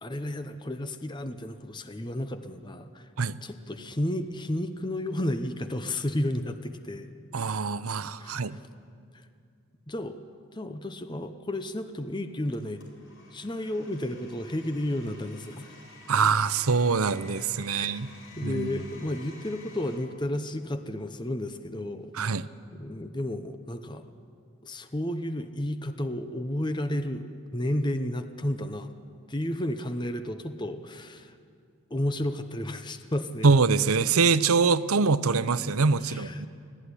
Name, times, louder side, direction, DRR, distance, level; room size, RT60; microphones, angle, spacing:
voice 1, 0.0-3.1 3.4-7.1 8.2-8.6 9.1-9.3 9.9-10.2 10.5-12.8 13.3-15.8 17.7-18.0 18.4-22.2 22.7-24.1 24.6-27.3 27.5-28.9 29.3-31.4 31.9-33.5 36.0-36.4, left 1 dB, 20° left, 9 dB, 0.8 m, -32 dB
voice 2, 7.3-8.6 16.1-18.1 18.4-18.7 22.1-22.5 33.4-36.5, right 4 dB, 85° right, 15 dB, 0.7 m, -24 dB
Domestic sounds home sounds, 12.5-20.0, left 3 dB, 55° left, 4.8 m, -52 dB
24.5 x 16.0 x 9.9 m, 2.3 s
head